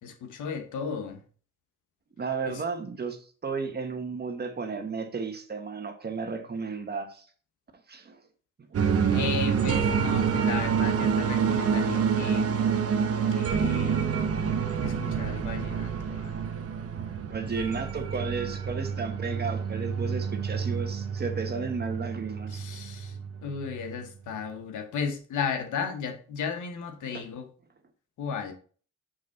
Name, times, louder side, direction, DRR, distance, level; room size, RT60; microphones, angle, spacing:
voice 1, 0.0-1.2 2.4-2.6 9.1-12.7 13.3-14.1 14.8-16.4 22.5-23.2 23.4-27.5 28.2-28.5, left 6 dB, 80° left, 5 dB, 1.4 m, -35 dB
voice 2, 2.2-7.3 7.9-8.2 8.7-9.0 17.3-22.6, right 4 dB, 35° right, 6 dB, 1.3 m, -33 dB
sound 1, 8.7-23.9, right 6 dB, 50° right, 1.0 m, -28 dB
6.3 x 5.5 x 4.0 m, 0.42 s
cardioid pair, 90°, 30 cm